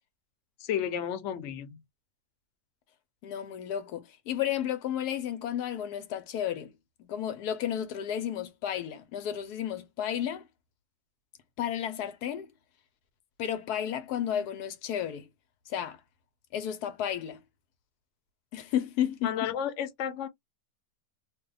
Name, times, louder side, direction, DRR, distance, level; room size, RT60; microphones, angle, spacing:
voice 1, 0.6-1.8 19.2-20.3, left 9 dB, 60° left, 0.9 m, -32 dB
voice 2, 3.2-6.7 7.0-10.4 11.6-12.5 13.4-15.3 15.7-16.0 16.5-17.4 18.5-19.5, left 10 dB, 85° left, 1.2 m, -32 dB
2.7 x 2.2 x 3.8 m
omnidirectional pair, 1.6 m